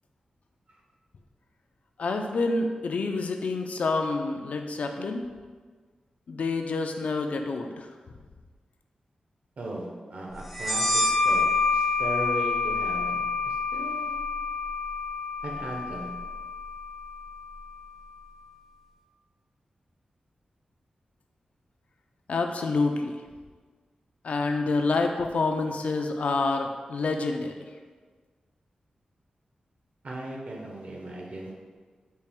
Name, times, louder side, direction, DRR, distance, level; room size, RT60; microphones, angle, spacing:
voice 1, 2.0-5.3 6.3-7.9 22.3-23.2 24.2-27.5, left 3 dB, 65° left, 4 dB, 0.3 m, -27 dB
voice 2, 9.6-14.2 15.4-16.1 30.0-31.5, right 1 dB, 60° right, -1 dB, 0.7 m, -37 dB
sound 1, 10.5-17.8, left 4 dB, ahead, 0.4 m, -28 dB
4.3 x 2.4 x 3.5 m, 1.5 s
wide cardioid pair, 110°, 3 cm